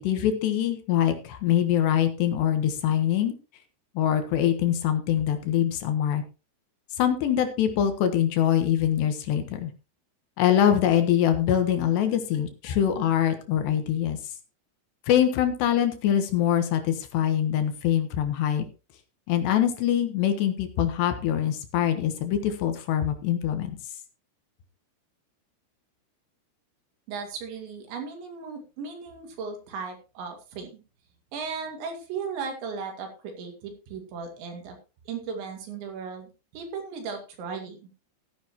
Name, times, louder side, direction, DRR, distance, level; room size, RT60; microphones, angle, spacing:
voice 1, 0.0-3.3 3.9-6.2 7.0-9.7 10.4-14.2 15.1-18.7 19.3-23.8, left 10 dB, 70° left, 7 dB, 3.3 m, -24 dB
voice 2, 27.1-30.8 31.3-34.8 35.1-37.9, right 5 dB, 75° right, 4 dB, 4.5 m, -36 dB
15.0 x 10.5 x 3.0 m, 0.31 s
omnidirectional pair, 5.3 m